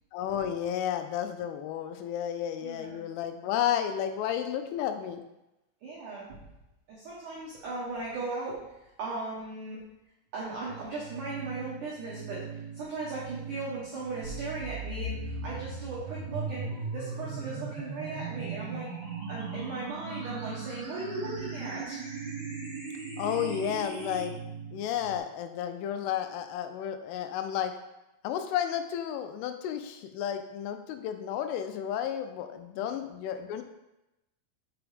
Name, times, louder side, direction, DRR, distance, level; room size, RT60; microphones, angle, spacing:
voice 1, 0.1-5.2 23.2-24.4 24.7-27.7 28.2-33.6, left 9 dB, 85° left, 8 dB, 3.1 m, -32 dB
voice 2, 2.6-3.0 5.8-6.4 6.9-8.6 9.0-9.8 10.3-12.4 12.7-18.9 19.3-22.0, right 3 dB, 90° right, -7 dB, 1.7 m, -37 dB
sound 1, 10.7-25.2, right 7 dB, 60° right, 1.6 m, -43 dB
sound 2, 14.2-24.2, right 3 dB, 45° right, 2.0 m, -39 dB
6.1 x 5.8 x 3.4 m, 0.93 s
omnidirectional pair, 5.6 m